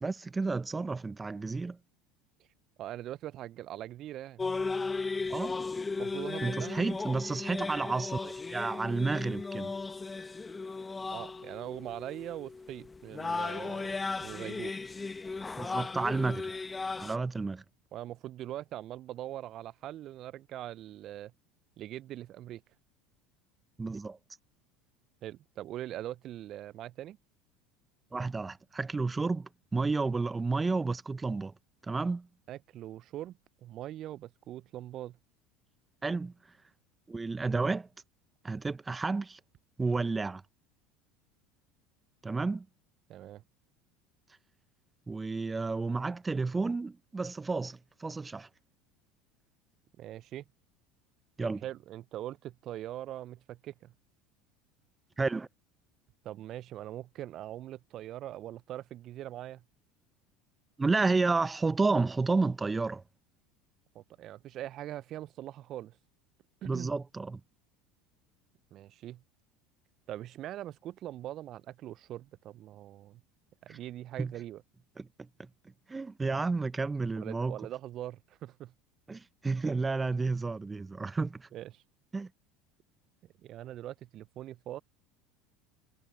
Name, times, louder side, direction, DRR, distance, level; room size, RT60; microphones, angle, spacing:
voice 1, 0.0-1.8 5.3-5.6 6.4-9.8 15.6-16.5 17.0-17.6 23.8-24.2 28.1-31.5 31.9-32.3 36.0-36.3 37.1-37.9 38.4-39.4 39.8-40.4 42.2-42.7 45.1-48.5 51.4-51.6 55.2-55.5 60.8-63.0 66.6-67.4 73.7-73.8 74.2-74.3 75.0-75.5 75.9-77.6 79.1-81.5 82.1-82.3, right 3 dB, 20° right, 1.0 m, -31 dB
voice 2, 2.8-4.4 6.0-6.8 11.1-14.7 17.9-21.3 21.8-22.6 25.2-27.2 32.5-35.2 43.1-43.4 50.0-50.4 51.4-53.9 56.2-59.6 63.9-66.0 66.6-66.9 68.7-69.2 70.1-73.2 73.6-74.6 77.2-78.7 81.5-81.8 83.4-84.8, right 13 dB, 50° right, 0.7 m, -42 dB
sound 1, 4.4-17.2, left 4 dB, 20° left, 1.1 m, -36 dB
hypercardioid pair, 75°, 0 cm